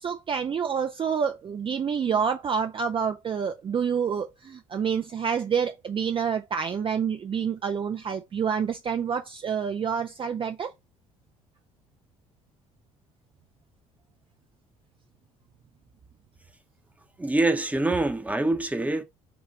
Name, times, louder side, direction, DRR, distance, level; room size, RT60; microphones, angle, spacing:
voice 1, 0.0-10.7, right 7 dB, 30° right, 0.6 m, -28 dB
voice 2, 17.2-19.0, right 2 dB, 10° right, 1.0 m, -25 dB
6.8 x 2.4 x 3.2 m
figure-of-eight pair, 55°, 17 cm